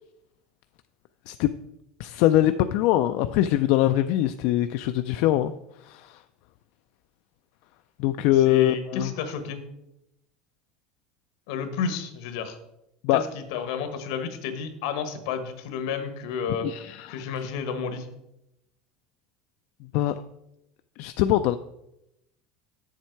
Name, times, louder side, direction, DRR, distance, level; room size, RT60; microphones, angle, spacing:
voice 1, 2.0-5.5 5.8-6.2 8.0-9.1 13.0-13.2 16.6-17.2 19.9-20.2 21.0-21.6, left 13 dB, 60° left, 10 dB, 0.3 m, -23 dB
voice 2, 8.4-9.6 11.5-12.6 13.1-16.7 17.1-18.1, left 6 dB, 80° left, 8 dB, 1.3 m, -31 dB
7.7 x 7.4 x 4.6 m, 0.85 s
cardioid pair, 160°, 3 cm